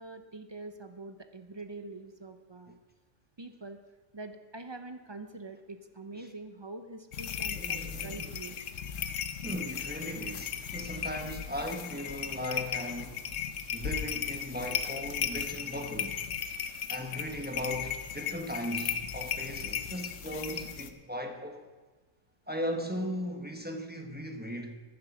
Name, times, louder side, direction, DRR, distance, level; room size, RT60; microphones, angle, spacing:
voice 1, 0.0-2.8 3.4-3.8 4.1-8.6, right 3 dB, 45° right, 0.3 m, -45 dB
sound 1, 7.1-20.9, left 8 dB, 70° left, 1.0 m, -36 dB
voice 2, 7.5-8.3 9.4-13.3 13.7-16.2 16.9-21.7 22.5-24.7, equal, 10° right, 0.8 m, -37 dB
11.0 x 11.0 x 6.0 m
omnidirectional pair, 1.4 m